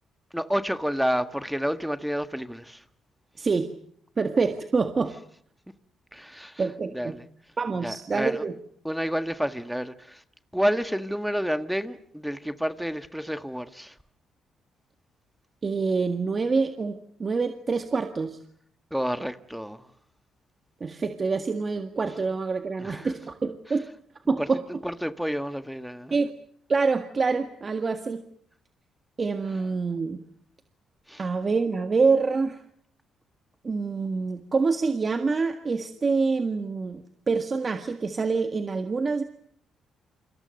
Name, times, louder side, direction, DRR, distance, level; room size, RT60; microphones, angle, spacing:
voice 1, 0.3-2.8 6.1-6.6 6.9-7.2 7.8-8.4 8.8-10.2 10.5-13.9 18.9-19.8 22.8-23.1 24.4-24.5 24.8-26.2 31.1-31.2, equal, ahead, 1.5 m, -29 dB
voice 2, 3.4-3.7 4.2-5.1 6.6-7.2 7.6-8.5 15.6-18.4 20.8-23.9 24.3-24.6 26.1-26.3 26.7-28.2 29.2-30.2 31.2-32.6 33.6-39.2, right 4 dB, 35° right, 1.8 m, -26 dB
29.0 x 25.5 x 6.6 m
cardioid pair, 90°, 0 cm